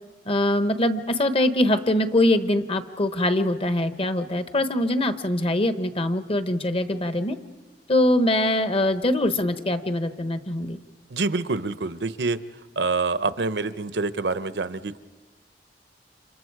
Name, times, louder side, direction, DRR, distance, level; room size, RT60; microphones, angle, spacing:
voice 1, 0.3-7.3 7.9-10.8, left 1 dB, 35° left, 9 dB, 1.1 m, -23 dB
voice 2, 11.1-12.4 12.8-15.0, right 3 dB, 70° right, 13 dB, 0.8 m, -26 dB
29.0 x 26.5 x 4.8 m, 1.3 s
head